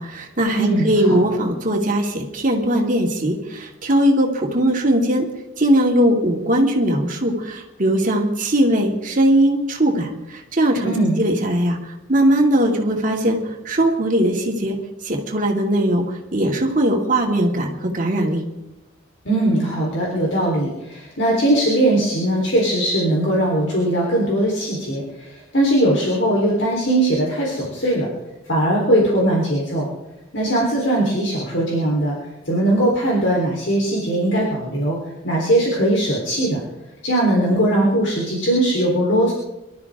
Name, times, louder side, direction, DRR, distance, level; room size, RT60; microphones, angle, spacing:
voice 1, 0.0-5.3 5.6-11.8 12.1-13.4 13.6-14.8 15.0-18.4, right 1 dB, 40° right, 1 dB, 2.5 m, -19 dB
voice 2, 0.6-1.2 10.8-11.2 19.3-28.1 28.5-29.9 30.3-32.2 32.5-35.0 35.2-36.6 37.0-39.3, right 1 dB, 60° left, -4 dB, 3.8 m, -20 dB
24.5 x 13.0 x 3.6 m, 0.94 s
head